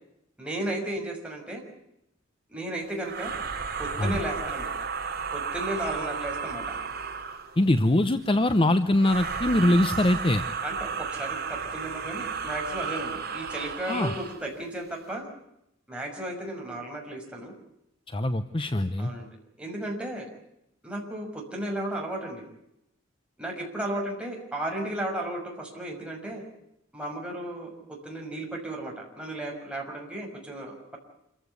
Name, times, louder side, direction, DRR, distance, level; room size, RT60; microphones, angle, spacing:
voice 1, 0.4-1.6 2.5-3.3 3.8-4.7 5.3-6.8 10.6-15.2 15.9-17.5 19.0-19.3 19.6-20.3 20.8-22.4 23.4-26.4 26.9-31.0, right 1 dB, 5° right, -1 dB, 6.0 m, -34 dB
sound 1, 3.0-7.6 8.9-14.4, right 5 dB, 50° right, 3.3 m, -33 dB
voice 2, 7.6-10.4 13.9-14.1 18.1-19.1, left 1 dB, 25° left, 10 dB, 0.8 m, -23 dB
27.0 x 15.5 x 9.6 m, 0.82 s
head